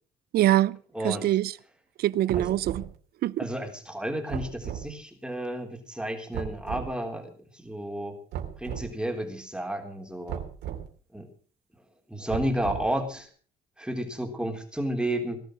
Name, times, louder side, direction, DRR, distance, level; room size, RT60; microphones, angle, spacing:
voice 1, 0.3-0.8 1.0-1.5 2.0-2.8 3.2-3.4, right 13 dB, 65° right, 0.7 m, -24 dB
voice 2, 0.9-1.4 2.4-2.5 3.4-8.2 8.6-10.4 11.1-11.3 12.1-13.3 13.8-15.4, right 1 dB, 5° right, 3.7 m, -32 dB
sound 1, 2.3-2.9 4.3-4.9 6.3-6.9 8.3-8.9 10.3-10.9 12.3-13.0, right 10 dB, 85° right, 3.2 m, -35 dB
19.0 x 11.5 x 6.4 m
cardioid pair, 110°, 17 cm